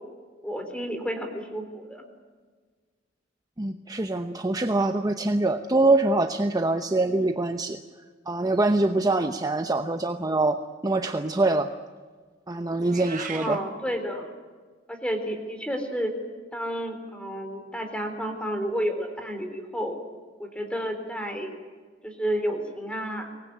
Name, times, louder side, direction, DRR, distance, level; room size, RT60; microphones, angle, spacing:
voice 1, 0.4-2.0 13.3-14.3 14.9-16.1 16.5-20.0 20.4-21.5 22.0-23.3, equal, 5° left, 6 dB, 3.8 m, -31 dB
voice 2, 3.6-7.8 8.3-11.7 12.5-13.6, right 2 dB, 20° right, 7 dB, 0.9 m, -24 dB
Meow, 12.8-13.6, right 6 dB, 45° right, 2.0 m, -37 dB
24.5 x 19.5 x 9.5 m, 1.5 s
head